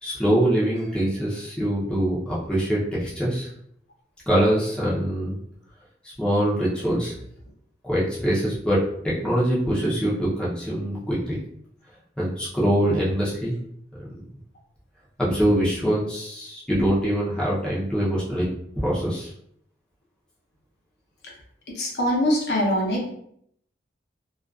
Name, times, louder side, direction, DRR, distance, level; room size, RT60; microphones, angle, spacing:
voice 1, 0.0-3.5 4.3-5.4 6.2-7.1 7.8-11.4 12.2-13.5 15.2-18.5 18.8-19.3, equal, 5° left, -8 dB, 0.6 m, -23 dB
voice 2, 21.7-23.1, equal, 70° left, -3 dB, 0.8 m, -23 dB
2.4 x 2.3 x 2.3 m, 0.69 s
head